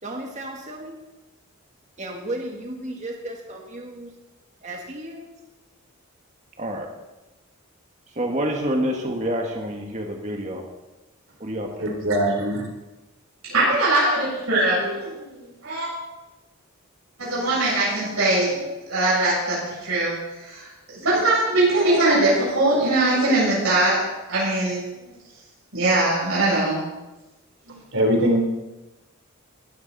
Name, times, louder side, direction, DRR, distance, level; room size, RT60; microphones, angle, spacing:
voice 1, 0.0-1.0 2.0-4.1 4.6-5.3 6.6-6.9 8.1-10.6 11.4-11.9, right 1 dB, 35° right, 1 dB, 1.8 m, -30 dB
voice 2, 11.8-12.7 27.9-28.4, right 1 dB, 60° right, 1 dB, 3.7 m, -21 dB
voice 3, 13.4-15.9 17.2-20.1 20.4-20.7 20.9-25.1 25.7-26.8 27.7-27.8, right 2 dB, 80° right, -7 dB, 7.5 m, -21 dB
21.0 x 14.0 x 4.2 m, 1.1 s
head